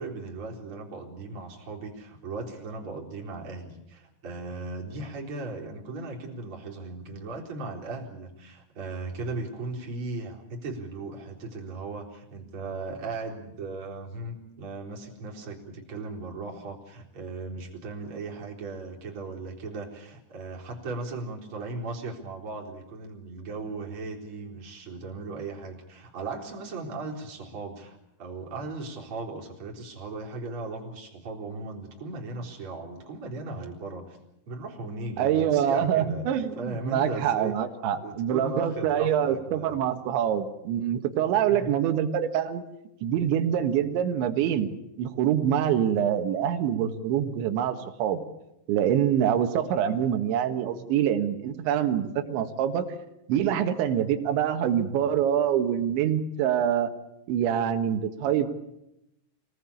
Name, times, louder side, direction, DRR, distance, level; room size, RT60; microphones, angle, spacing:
voice 1, 0.0-34.2 34.5-37.6 38.0-39.8 41.5-41.7, right 3 dB, 30° right, -1 dB, 4.4 m, -37 dB
voice 2, 35.2-42.6 43.0-44.7 45.0-48.2 48.7-52.9 53.3-56.9 57.3-58.5, right 9 dB, 80° right, 8 dB, 3.8 m, -25 dB
26.0 x 19.0 x 8.6 m, 0.86 s
omnidirectional pair, 5.2 m